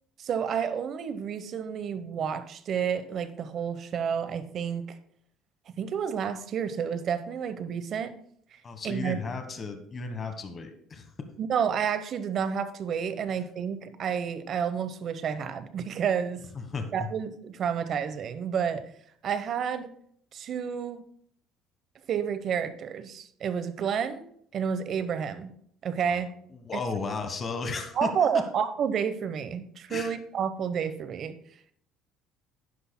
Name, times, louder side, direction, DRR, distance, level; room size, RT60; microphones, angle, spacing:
voice 1, 0.2-4.8 5.8-8.1 8.5-9.2 11.4-16.4 16.9-18.9 19.2-19.9 20.3-21.0 22.1-24.2 24.5-25.5 25.8-26.3 26.7-26.8 28.0-31.4, right 7 dB, 50° right, 11 dB, 0.9 m, -30 dB
voice 2, 8.6-11.1 16.5-16.9 26.0-26.3 26.6-28.1 29.9-30.1, left 4 dB, 30° left, 7 dB, 1.2 m, -34 dB
11.5 x 10.0 x 2.2 m, 0.65 s
cardioid pair, 120°, 0 cm